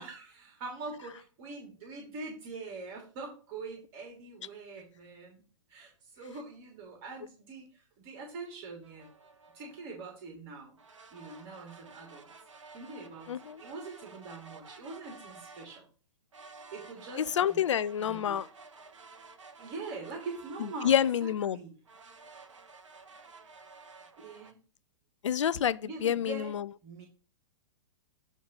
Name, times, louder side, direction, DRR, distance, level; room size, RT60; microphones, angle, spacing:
voice 1, 0.0-5.4 5.7-9.1 9.5-10.8 11.1-12.3 12.7-15.9 16.7-17.6 18.0-18.4 19.6-21.7 24.2-24.6 25.8-26.5 26.8-27.1, right 3 dB, 40° right, 3.0 m, -43 dB
sound 1, 8.8-10.0 10.8-15.9 16.3-21.4 21.8-24.5, right 4 dB, 75° right, 1.2 m, -53 dB
voice 2, 13.3-13.6 17.2-18.5 20.6-21.6 25.2-26.7, left 9 dB, 70° left, 0.5 m, -28 dB
9.4 x 3.7 x 5.4 m
figure-of-eight pair, 110°, 16 cm